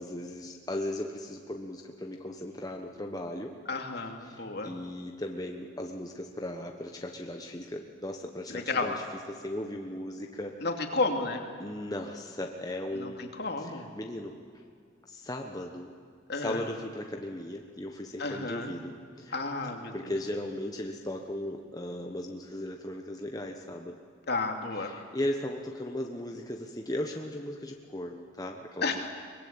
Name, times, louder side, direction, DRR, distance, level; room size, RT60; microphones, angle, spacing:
voice 1, 0.0-3.5 4.2-10.7 11.6-13.3 13.6-14.4 15.1-15.9 16.3-19.4 19.9-24.0 24.7-29.0, left 1 dB, 20° left, 2 dB, 1.2 m, -37 dB
voice 2, 3.7-4.7 8.5-8.9 10.6-11.4 12.9-13.9 16.3-16.6 18.2-18.7 19.3-19.9 24.3-24.9 28.8-29.0, left 3 dB, 55° left, 3 dB, 2.7 m, -32 dB
23.0 x 21.5 x 8.8 m, 2.2 s
head